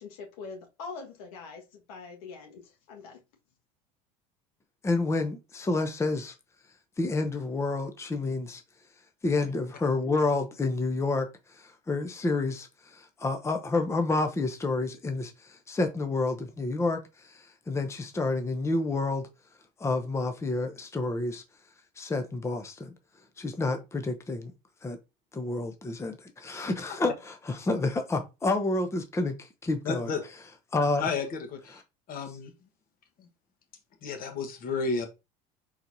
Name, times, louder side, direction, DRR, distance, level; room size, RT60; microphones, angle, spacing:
voice 1, 0.0-3.2, left 4 dB, 80° left, 1.6 m, -43 dB
voice 2, 4.8-6.3 7.0-8.6 9.2-19.3 19.8-21.4 22.0-22.9 23.4-24.5 24.8-25.0 25.3-30.1 30.7-31.1 31.7-31.8, left 3 dB, 15° left, 0.7 m, -29 dB
voice 3, 29.8-30.2 31.0-31.8 32.1-32.5 33.2-33.3 34.0-35.1, left 4 dB, 50° left, 1.3 m, -32 dB
4.4 x 4.0 x 2.7 m
supercardioid pair, 95°, 19 cm